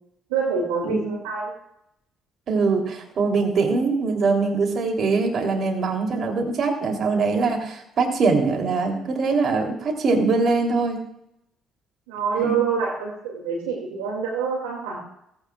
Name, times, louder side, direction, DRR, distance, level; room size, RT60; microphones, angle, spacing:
voice 1, 0.3-1.5 12.1-15.0, right 5 dB, 85° right, -1 dB, 2.4 m, -26 dB
voice 2, 2.5-11.0 12.3-12.6, right 4 dB, 55° right, 2 dB, 3.4 m, -22 dB
17.0 x 16.0 x 2.5 m, 0.79 s
hypercardioid pair, 50°, 0 cm